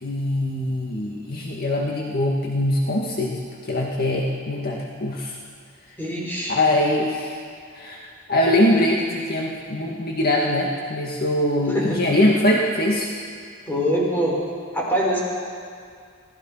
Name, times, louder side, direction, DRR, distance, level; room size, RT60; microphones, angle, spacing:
voice 1, 0.0-3.4 3.7-5.3 6.5-7.4 7.8-8.0 8.3-13.1, left 1 dB, 50° left, -2 dB, 1.9 m, -22 dB
voice 2, 6.0-6.5 11.7-12.0 13.7-14.4 14.7-15.2, equal, 10° left, -4 dB, 5.9 m, -23 dB
26.5 x 18.5 x 5.7 m, 2.2 s
head